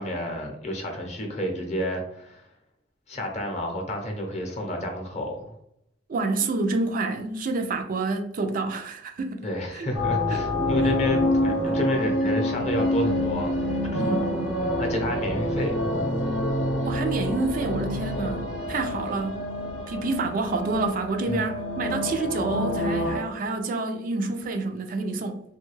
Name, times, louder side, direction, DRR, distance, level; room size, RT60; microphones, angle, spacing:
voice 1, 0.0-2.4 3.1-5.5 9.4-13.5 13.9-14.1 14.8-15.8 21.3-21.4, equal, 35° left, 0.7 m, -30 dB
voice 2, 6.1-9.5 9.7-9.9 10.3-10.4 14.0-14.3 16.8-19.4 19.9-25.4, right 3 dB, 45° right, 0.3 m, -28 dB
sound 1, 9.9-23.2, left 1 dB, 70° left, 0.7 m, -27 dB
3.2 x 2.2 x 3.1 m
head